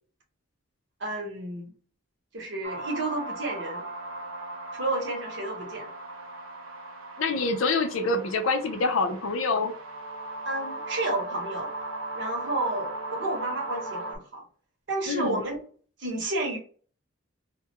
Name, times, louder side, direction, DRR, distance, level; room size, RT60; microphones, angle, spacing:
voice 1, 1.0-1.7 2.3-3.9 4.7-5.9 10.4-11.7 12.1-14.4 14.9-15.6 16.0-16.6, right 2 dB, 60° right, 0 dB, 0.9 m, -31 dB
sound 1, 2.6-14.2, right 2 dB, 90° right, 0.6 m, -37 dB
voice 2, 7.2-9.7 15.1-15.4, left 3 dB, 85° left, 6 dB, 0.6 m, -26 dB
2.3 x 2.2 x 2.8 m, 0.41 s
head